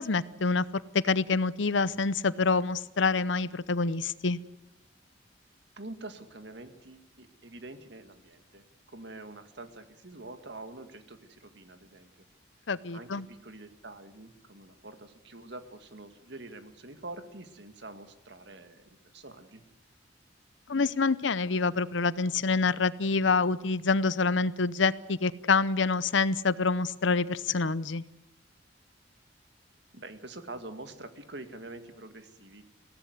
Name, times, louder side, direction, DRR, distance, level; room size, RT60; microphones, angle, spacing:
voice 1, 0.0-4.4 12.7-13.3 20.7-28.0, left 4 dB, 75° left, 17 dB, 0.8 m, -27 dB
voice 2, 5.8-12.3 12.9-19.6 29.9-32.7, right 2 dB, 60° right, 8 dB, 2.1 m, -46 dB
23.0 x 17.0 x 8.2 m, 0.88 s
head